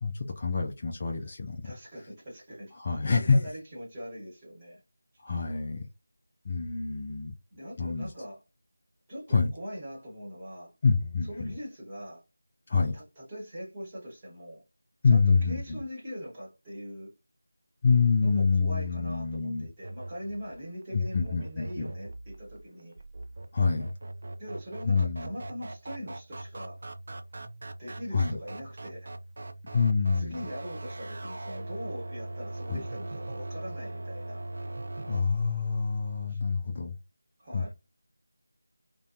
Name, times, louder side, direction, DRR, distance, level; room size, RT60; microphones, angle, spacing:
voice 1, 0.0-1.7 2.7-3.4 5.2-5.8 6.4-7.3 7.8-8.1 9.3-9.5 10.8-11.5 12.7-12.9 15.0-15.8 17.8-19.7 20.9-21.9 23.5-24.0 24.8-25.3 28.1-28.4 29.7-30.4 32.7-32.8 35.1-37.0 37.5-37.7, left 5 dB, 30° left, 0.3 m, -26 dB
voice 2, 1.6-4.8 7.5-8.4 9.1-10.7 11.2-12.2 12.7-14.6 15.1-15.2 15.5-17.1 18.2-23.0 24.4-26.8 27.8-29.1 30.1-34.5 36.3-36.4 37.4-37.7, equal, 20° right, 1.1 m, -41 dB
sound 1, 19.8-35.2, right 2 dB, 45° right, 0.4 m, -41 dB
2.4 x 2.1 x 2.5 m
figure-of-eight pair, 165°, 0 cm